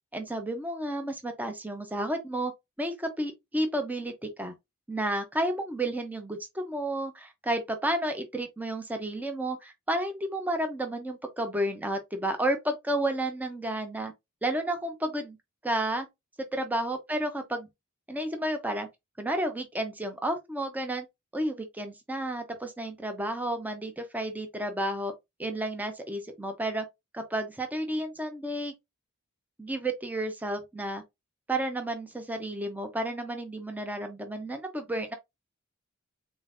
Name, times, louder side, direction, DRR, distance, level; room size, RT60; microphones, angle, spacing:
voice 1, 0.1-2.5 2.8-4.5 4.9-14.1 14.4-15.4 15.6-16.1 16.5-17.7 18.1-18.9 19.2-21.1 21.3-25.1 25.4-26.8 27.1-28.7 29.6-31.0 31.5-35.1, right 1 dB, 10° right, 0.6 m, -31 dB
3.6 x 3.6 x 2.5 m
head